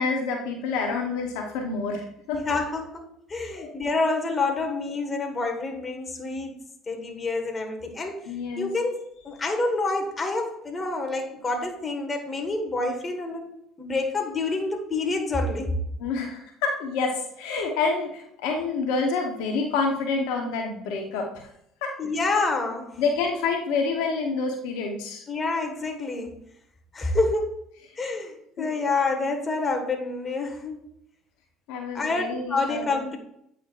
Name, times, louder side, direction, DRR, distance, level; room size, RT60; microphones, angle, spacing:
voice 1, 0.0-2.4 3.5-3.7 8.3-8.9 16.0-21.3 21.8-21.9 23.0-25.2 28.6-28.7 31.7-32.9, left 4 dB, 75° left, 2 dB, 1.0 m, -28 dB
voice 2, 2.3-6.5 6.9-8.2 8.6-15.7 22.0-23.0 25.3-26.3 26.9-27.7 28.0-30.8 31.9-33.2, left 3 dB, 30° left, 3 dB, 1.6 m, -28 dB
8.6 x 5.6 x 2.5 m, 0.74 s
hypercardioid pair, 70°, 0 cm